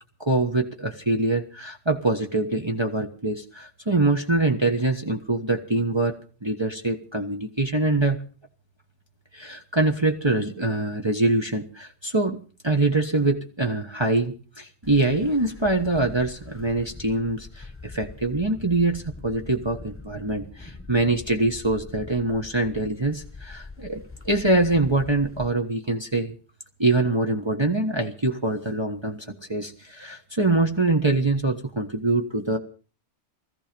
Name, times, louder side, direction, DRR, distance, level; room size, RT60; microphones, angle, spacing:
voice 1, 0.2-8.2 9.3-12.4 12.6-26.3 26.8-32.6, right 2 dB, 25° right, 2 dB, 1.3 m, -24 dB
sound 1, 14.8-25.5, left 3 dB, 10° left, 1.2 m, -43 dB
18.0 x 14.5 x 5.2 m, 0.39 s
omnidirectional pair, 1.2 m